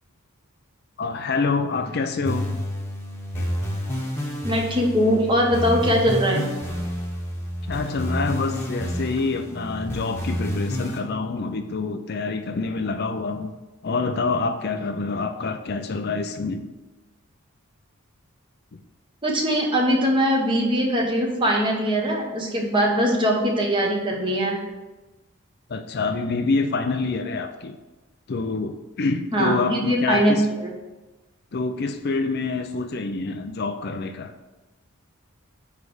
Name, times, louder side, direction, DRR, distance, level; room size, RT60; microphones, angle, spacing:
voice 1, 1.0-2.6 3.3-3.5 7.6-13.5 13.8-16.7 25.7-27.8 28.3-30.5 31.5-34.3, left 3 dB, 45° left, 8 dB, 0.4 m, -26 dB
sound 1, 2.2-11.0, equal, 10° left, 1.3 m, -29 dB
voice 2, 4.4-6.4 19.2-24.6 29.3-30.7, equal, 20° right, 0 dB, 1.3 m, -21 dB
9.6 x 3.3 x 6.3 m, 1.1 s
head